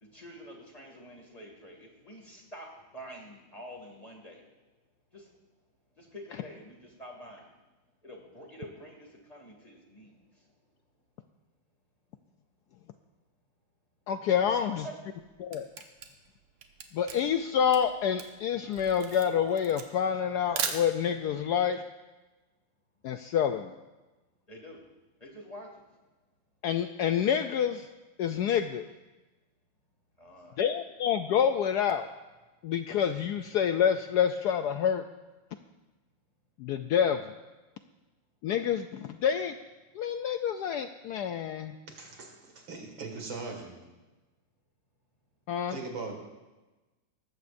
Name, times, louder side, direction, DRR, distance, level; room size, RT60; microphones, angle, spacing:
voice 1, 0.0-2.7 2.9-4.4 5.1-5.3 6.0-7.5 8.0-10.1 14.5-15.0 24.5-24.8 25.2-25.8 30.2-30.6, equal, 20° left, 0 dB, 2.2 m, -47 dB
voice 2, 14.1-14.9 15.4-15.7 16.9-21.8 23.0-23.7 26.6-27.9 28.2-28.9 30.6-32.1 32.6-35.0 36.6-37.2 38.4-39.5 40.0-41.7 45.5-45.8, left 8 dB, 90° left, 8 dB, 0.8 m, -27 dB
Camera, 15.1-21.3, right 7 dB, 80° right, 1.9 m, -38 dB
voice 3, 41.9-43.8 45.7-46.2, right 3 dB, 65° right, 2 dB, 2.8 m, -40 dB
19.0 x 15.0 x 2.6 m, 1.1 s
omnidirectional pair, 2.3 m